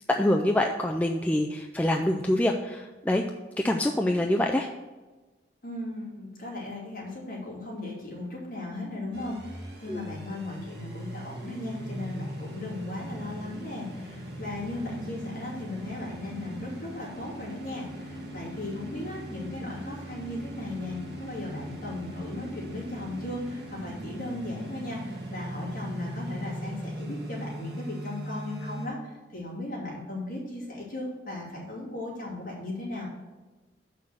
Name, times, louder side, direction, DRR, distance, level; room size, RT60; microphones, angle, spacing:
voice 1, 0.1-3.2 3.6-4.7 9.9-10.0, left 1 dB, 10° left, 2 dB, 0.3 m, -25 dB
voice 2, 5.6-33.1, left 2 dB, 50° left, -5 dB, 2.7 m, -37 dB
sound 1, 9.1-28.9, equal, 65° right, 1.6 m, -39 dB
6.4 x 5.7 x 6.2 m, 1.2 s
head